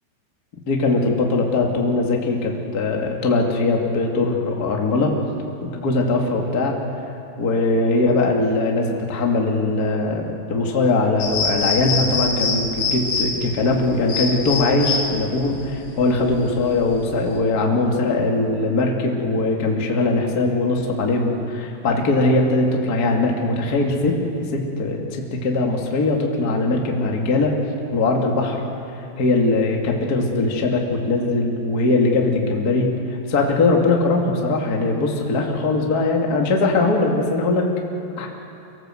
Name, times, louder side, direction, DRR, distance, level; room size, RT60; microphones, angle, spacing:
voice 1, 0.7-5.1 5.6-6.7 7.4-24.2 24.5-27.5 27.9-28.6 29.2-37.7 38.2-38.3, left 2 dB, 35° left, 0 dB, 1.5 m, -20 dB
sound 1, 11.2-17.4, left 4 dB, 60° left, 4.8 m, -25 dB
25.5 x 18.0 x 7.8 m, 2.8 s
omnidirectional pair, 5.5 m